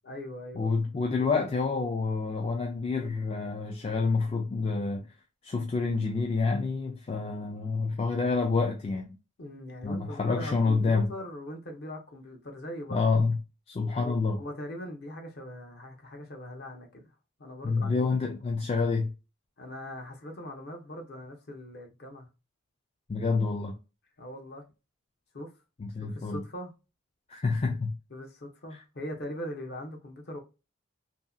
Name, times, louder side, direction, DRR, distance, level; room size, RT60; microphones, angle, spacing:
voice 1, 0.0-0.7 1.1-1.2 9.4-13.0 13.9-17.0 17.4-18.1 19.6-22.3 24.2-24.7 25.3-25.5 26.0-26.7 28.1-30.4, left 1 dB, 50° left, 0.8 m, -41 dB
voice 2, 0.5-5.1 5.4-9.2 9.8-11.1 12.9-13.4 13.7-14.4 17.6-19.1 23.1-23.8 25.8-26.4 27.3-27.9 28.7-28.8, left 4 dB, 30° left, 0.3 m, -28 dB
2.8 x 2.7 x 2.3 m
head